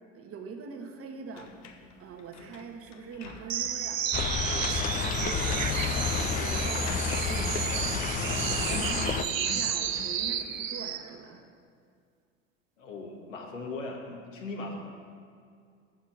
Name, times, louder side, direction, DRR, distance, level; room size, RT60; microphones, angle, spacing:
voice 1, 0.1-1.5 2.0-4.2 4.6-11.4, right 5 dB, 35° right, 4 dB, 1.4 m, -43 dB
sound 1, 1.3-3.9 4.4-4.5 5.9-6.4 6.7-7.3 8.3-8.4 8.7-10.2, left 4 dB, 45° left, 1.1 m, -47 dB
sound 2, 3.5-11.1, right 8 dB, 80° right, 0.7 m, -32 dB
sound 3, 4.1-9.3, left 7 dB, 20° left, 0.4 m, -30 dB
voice 2, 12.8-14.8, left 3 dB, 75° left, 0 dB, 1.9 m, -38 dB
7.3 x 7.2 x 7.9 m, 2.3 s
figure-of-eight pair, 70°, 39 cm